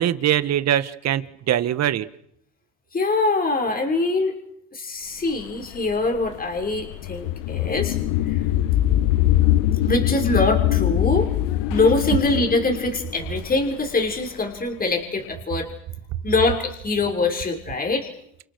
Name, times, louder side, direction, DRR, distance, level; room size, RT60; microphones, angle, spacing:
voice 1, 0.0-2.1, right 11 dB, 50° right, 13 dB, 1.9 m, -22 dB
voice 2, 2.9-4.3 4.7-8.0 8.3-8.4 9.8-11.3 11.7-15.7 16.2-18.1, left 3 dB, 25° left, 2 dB, 6.4 m, -23 dB
sound 1, 5.4-14.4, left 13 dB, 75° left, 1.4 m, -22 dB
29.5 x 28.0 x 6.6 m, 0.70 s
supercardioid pair, 85°, 33 cm